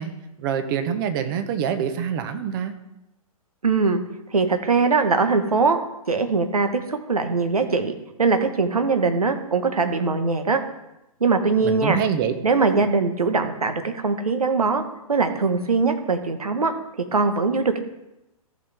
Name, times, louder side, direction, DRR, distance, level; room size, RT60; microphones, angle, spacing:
voice 1, 0.0-2.8 11.6-12.3, right 7 dB, 35° right, 8 dB, 1.0 m, -25 dB
voice 2, 3.6-4.0 4.3-5.8 6.1-7.9 8.2-10.6 11.2-12.0 12.4-14.8 15.1-16.7 17.1-17.8, right 4 dB, 85° right, 7 dB, 1.3 m, -21 dB
14.5 x 5.8 x 3.5 m, 0.92 s
figure-of-eight pair, 125°, 19 cm